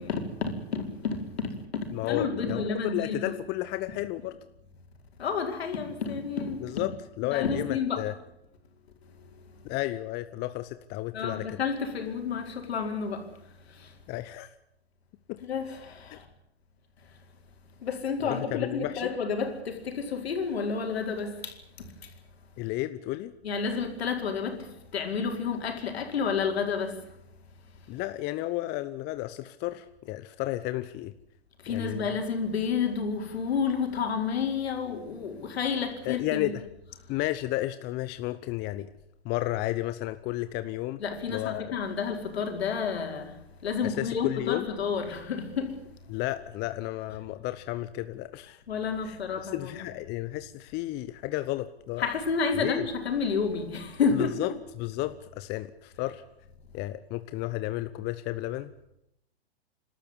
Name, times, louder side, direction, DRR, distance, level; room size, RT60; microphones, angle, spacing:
voice 1, 0.0-1.5 2.0-3.4 5.2-6.7 7.2-8.1 11.1-13.2 15.4-16.2 17.8-21.5 23.4-24.6 24.9-27.0 31.6-36.5 41.0-43.3 43.6-45.7 48.7-49.8 52.0-54.3, left 5 dB, 70° left, 4.9 m, -30 dB
voice 2, 1.9-4.3 6.6-6.9 7.2-8.1 9.6-11.5 14.1-14.5 15.3-15.4 16.1-16.2 18.3-19.1 22.6-23.3 27.9-31.1 31.7-32.1 36.0-36.6 37.1-38.9 39.2-41.0 41.3-41.8 43.8-44.7 46.1-48.6 49.0-52.1 52.5-52.9 54.2-54.5 54.8-56.2 56.7-58.8, left 16 dB, 30° left, 0.9 m, -32 dB
29.0 x 13.0 x 9.9 m
hypercardioid pair, 110°, 32 cm